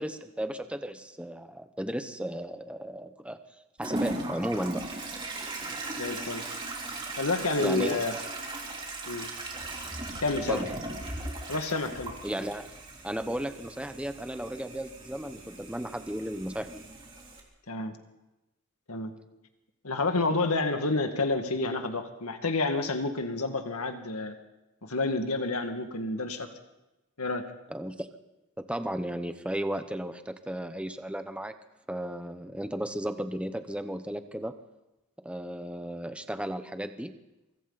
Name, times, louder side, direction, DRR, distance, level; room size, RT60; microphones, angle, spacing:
voice 1, 0.0-3.4 3.8-4.8 7.6-8.0 10.5-10.6 12.2-12.7 13.0-16.9 27.7-28.1 28.6-31.6 31.9-34.5 35.2-37.1, right 1 dB, 5° right, 9 dB, 0.9 m, -34 dB
Toilet flush, 3.8-17.4, right 2 dB, 20° right, 3.4 m, -38 dB
voice 2, 6.0-6.4 7.2-8.1 9.1-9.3 10.2-10.7 11.5-12.1 17.7-18.0 18.9-19.1 19.8-24.4 24.8-26.5 27.2-27.5, left 3 dB, 85° left, 6 dB, 2.1 m, -29 dB
25.0 x 24.5 x 4.2 m, 0.98 s
head